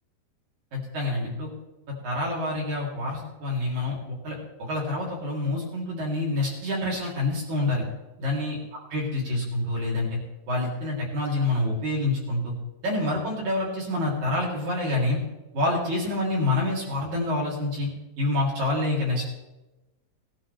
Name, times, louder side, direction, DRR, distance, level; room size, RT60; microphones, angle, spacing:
voice 1, 0.7-1.5 2.0-7.8 8.2-8.6 8.9-10.2 10.5-12.5 12.8-15.2 15.5-17.9 18.2-19.3, left 2 dB, 50° right, -3 dB, 3.9 m, -27 dB
18.5 x 11.5 x 3.3 m, 1.0 s
omnidirectional pair, 4.6 m